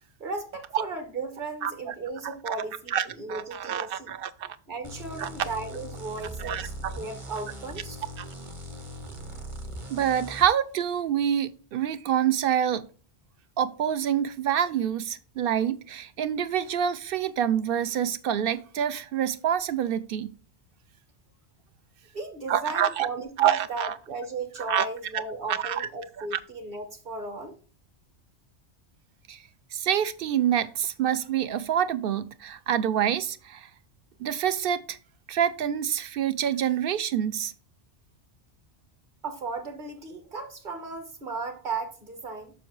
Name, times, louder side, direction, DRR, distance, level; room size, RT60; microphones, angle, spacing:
voice 1, 0.2-4.1 4.7-8.0 22.1-27.5 39.2-42.5, right 3 dB, 45° right, 1.4 m, -36 dB
voice 2, 1.6-1.9 2.2-2.6 2.9-4.6 5.2-5.3 6.4-7.0 8.2-8.3 9.9-12.8 13.6-20.3 22.5-23.1 23.4-24.0 24.6-24.9 25.5-25.9 26.2-26.4 29.3-29.4 29.7-33.7 34.2-35.0 35.3-37.5, right 9 dB, 65° right, 0.7 m, -27 dB
sound 1, 4.8-10.5, equal, 30° right, 0.9 m, -40 dB
7.0 x 6.1 x 3.2 m
omnidirectional pair, 1.1 m